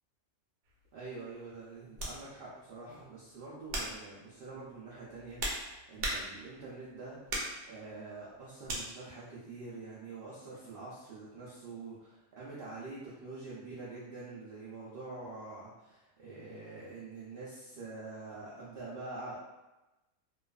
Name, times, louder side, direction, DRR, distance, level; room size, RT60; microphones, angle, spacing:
sound 1, 0.7-0.9 2.0-2.2 2.9-3.1 3.7-4.0 4.9-6.6 7.3-7.6 8.7-8.9, right 1 dB, 85° right, 1.1 m, -37 dB
voice 1, 0.9-7.3 7.6-19.4, right 3 dB, 65° right, -7 dB, 0.5 m, -46 dB
2.4 x 2.3 x 2.2 m, 1.0 s
omnidirectional pair, 1.5 m